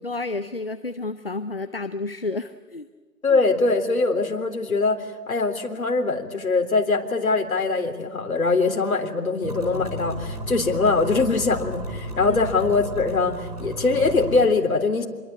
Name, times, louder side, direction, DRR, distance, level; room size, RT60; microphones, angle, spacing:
voice 1, 0.0-2.9 12.2-12.4, left 3 dB, 35° left, 10 dB, 0.7 m, -31 dB
voice 2, 3.2-15.1, left 3 dB, 55° left, 3 dB, 3.7 m, -22 dB
sound 1, 9.4-14.4, equal, 25° right, 3.9 m, -33 dB
27.0 x 22.5 x 8.6 m, 1.4 s
hypercardioid pair, 175°, 48 cm